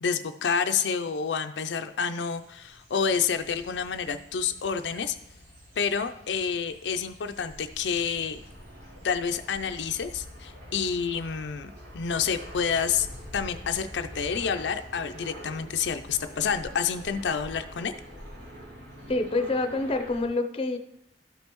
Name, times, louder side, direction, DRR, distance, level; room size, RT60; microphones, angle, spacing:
voice 1, 0.0-5.2 5.8-8.4 9.0-13.1 13.3-17.9, left 6 dB, 85° left, 7 dB, 0.5 m, -29 dB
sound 1, 1.9-20.3, equal, 85° right, 3.4 m, -46 dB
voice 2, 19.1-20.8, left 2 dB, 35° left, 8 dB, 0.6 m, -27 dB
12.5 x 5.3 x 3.0 m, 0.77 s
head